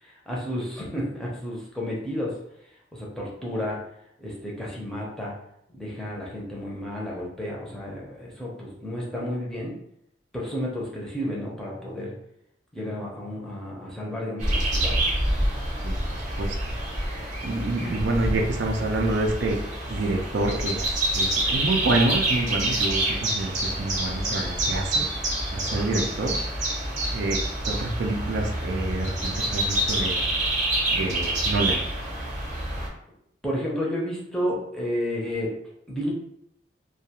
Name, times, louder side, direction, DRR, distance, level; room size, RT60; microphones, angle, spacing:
voice 1, 0.0-2.4 2.9-3.8 4.2-5.4 5.7-9.7 10.3-12.1 12.7-15.0 17.8-18.0 25.7-26.1 27.0-27.1 33.4-35.5 35.9-36.1, equal, 5° left, -5 dB, 0.6 m, -31 dB
sound 1, 14.4-32.9, right 1 dB, 45° right, 0.7 m, -27 dB
voice 2, 15.8-16.8 17.4-19.6 19.9-25.1 25.5-26.3 27.1-27.4 27.7-30.3 30.9-31.8, right 2 dB, 70° right, 2 dB, 0.4 m, -27 dB
2.3 x 2.2 x 2.8 m, 0.76 s
head